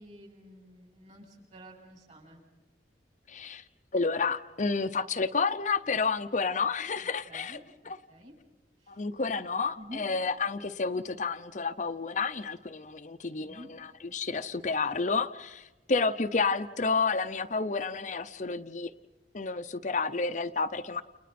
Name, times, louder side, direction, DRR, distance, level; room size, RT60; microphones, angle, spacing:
voice 1, 0.0-2.4 7.0-8.3 8.8-9.0 9.8-10.0 13.4-13.7, equal, 40° right, 0 dB, 7.9 m, -49 dB
voice 2, 3.3-3.6 3.9-7.6 7.9-8.0 8.9-18.9 19.3-21.0, left 4 dB, 40° left, 8 dB, 0.7 m, -30 dB
30.0 x 29.5 x 4.3 m, 1.2 s
head